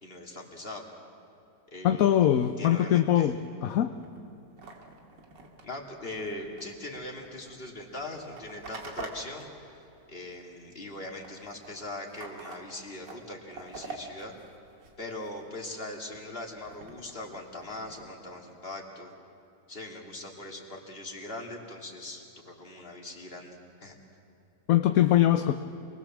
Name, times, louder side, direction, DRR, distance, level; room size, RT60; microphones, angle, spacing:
voice 1, 0.0-0.8 1.7-2.2 2.6-3.3 5.6-14.3 15.0-19.1 19.7-23.9, left 2 dB, 30° left, 0 dB, 2.9 m, -41 dB
voice 2, 1.8-3.9 24.7-25.5, left 11 dB, 60° left, 8 dB, 1.0 m, -22 dB
sound 1, 4.0-10.6 10.8-15.4 15.9-18.1, right 3 dB, 85° right, 2.8 m, -47 dB
27.5 x 20.5 x 7.4 m, 2.8 s
omnidirectional pair, 1.9 m